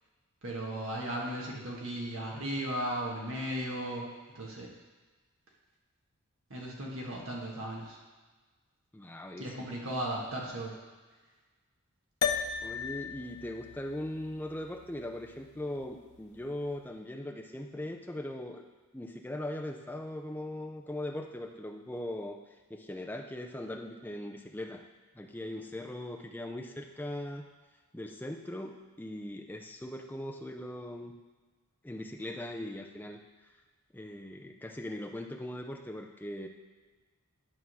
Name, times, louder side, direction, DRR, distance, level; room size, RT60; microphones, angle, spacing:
voice 1, 0.4-4.0 4.3-4.7 6.5-8.0 9.4-10.7, right 1 dB, 60° right, -2 dB, 1.6 m, -36 dB
voice 2, 8.9-9.7 12.6-18.6 18.9-22.4 22.7-24.8 25.1-27.5 27.9-31.1 31.8-33.2 33.9-36.5, left 1 dB, 10° left, 3 dB, 0.5 m, -40 dB
sound 1, 12.2-16.8, left 7 dB, 85° left, 0.5 m, -37 dB
11.0 x 3.6 x 6.2 m, 1.3 s
head